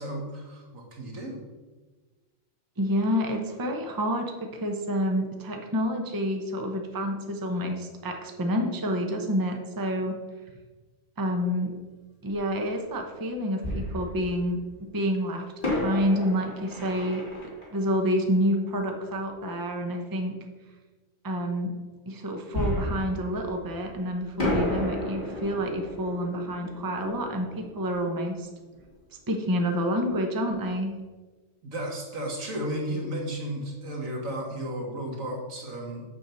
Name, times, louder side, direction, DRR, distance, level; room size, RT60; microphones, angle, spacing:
voice 1, 0.0-1.4 31.6-36.0, right 1 dB, 75° right, 0 dB, 2.0 m, -33 dB
voice 2, 2.8-10.1 11.2-11.7 12.2-14.6 14.9-20.4 21.2-21.7 22.1-28.5 29.3-30.9, equal, 20° right, 3 dB, 0.8 m, -28 dB
Fireworks, 12.3-12.4 13.6-14.7 15.6-19.1 22.5-24.0 24.4-28.9 29.2-29.3 29.8-30.0, left 1 dB, 40° left, 2.3 m, -33 dB
7.0 x 4.6 x 6.8 m, 1.3 s
omnidirectional pair, 1.4 m